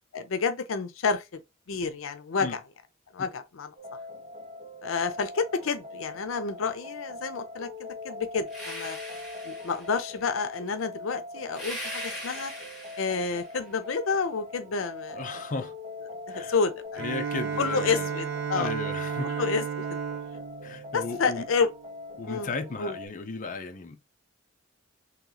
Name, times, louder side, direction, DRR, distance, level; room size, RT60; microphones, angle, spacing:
voice 1, 0.1-1.4 1.7-2.6 3.1-3.7 4.8-7.7 8.0-9.0 9.4-12.5 13.0-15.4 16.3-17.0 17.6-18.7 19.2-19.8 20.7-21.7 22.3-22.5 22.8-23.0, left 5 dB, 90° left, 0.5 m, -29 dB
sound 1, 3.8-23.1, left 2 dB, 35° right, 1.4 m, -42 dB
sound 2, 8.5-10.1 11.5-13.6, equal, ahead, 1.7 m, -40 dB
voice 2, 15.1-15.7 16.3-16.6 17.0-18.1 18.5-19.3 20.6-21.4 22.2-24.0, left 4 dB, 40° left, 0.6 m, -35 dB
Bowed string instrument, 17.0-21.7, right 7 dB, 65° right, 1.3 m, -33 dB
3.0 x 3.0 x 3.8 m
head